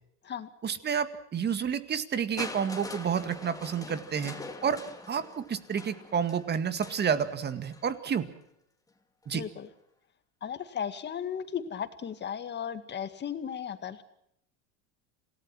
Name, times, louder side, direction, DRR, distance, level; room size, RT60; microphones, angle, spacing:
voice 1, 0.6-4.3 4.6-4.8 5.1-8.3 9.3-9.4, right 7 dB, 25° right, 11 dB, 2.0 m, -30 dB
Crushing, 2.4-8.3 9.2-9.3, left 3 dB, 10° left, 2.6 m, -44 dB
voice 2, 9.3-9.7 10.4-14.0, left 8 dB, 30° left, 11 dB, 2.0 m, -35 dB
27.5 x 18.5 x 6.2 m, 0.75 s
supercardioid pair, 120°, 38 cm